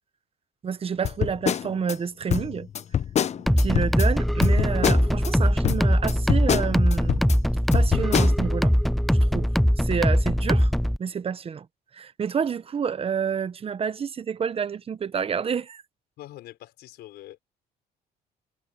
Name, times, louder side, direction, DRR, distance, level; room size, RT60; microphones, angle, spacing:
voice 1, 0.6-2.7 3.5-7.3 7.7-8.7 9.2-9.5 9.8-10.7 11.0-11.7 11.9-15.8, right 6 dB, 35° right, 1.0 m, -29 dB
sound 1, 1.0-1.9 2.3-4.1 4.4-5.3 5.6-7.4 7.7-8.3, left 9 dB, 40° left, 0.8 m, -26 dB
sound 2, 3.5-11.0, equal, ahead, 0.4 m, -21 dB
voice 2, 16.2-17.4, left 14 dB, 75° left, 5.5 m, -44 dB
cardioid pair, 110°, 17 cm